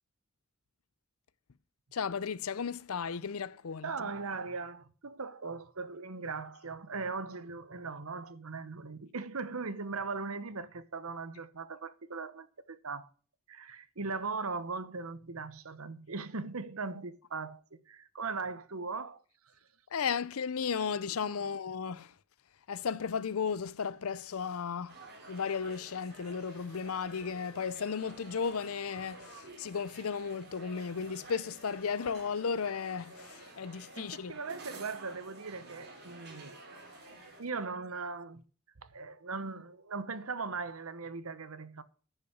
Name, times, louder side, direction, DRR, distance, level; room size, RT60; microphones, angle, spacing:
voice 1, 1.9-4.1 19.9-22.1 22.7-25.0 25.3-34.4, left 6 dB, 90° left, 0.6 m, -35 dB
voice 2, 3.8-13.1 13.5-19.6 33.9-36.6 37.4-38.4 38.8-41.8, right 4 dB, 85° right, 1.0 m, -39 dB
sound 1, 24.9-37.4, right 2 dB, 50° right, 4.3 m, -51 dB
10.5 x 5.8 x 8.1 m
head